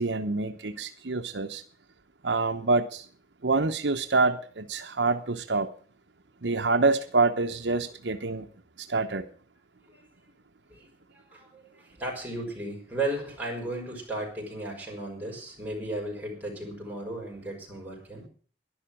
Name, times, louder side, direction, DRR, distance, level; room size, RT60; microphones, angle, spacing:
voice 1, 0.0-1.6 2.2-3.1 3.4-5.7 6.4-8.5 8.8-9.3, right 3 dB, 80° right, 8 dB, 0.9 m, -26 dB
voice 2, 9.8-10.3 10.7-18.3, right 1 dB, 10° right, -1 dB, 5.7 m, -35 dB
11.5 x 11.0 x 7.4 m, 0.43 s
head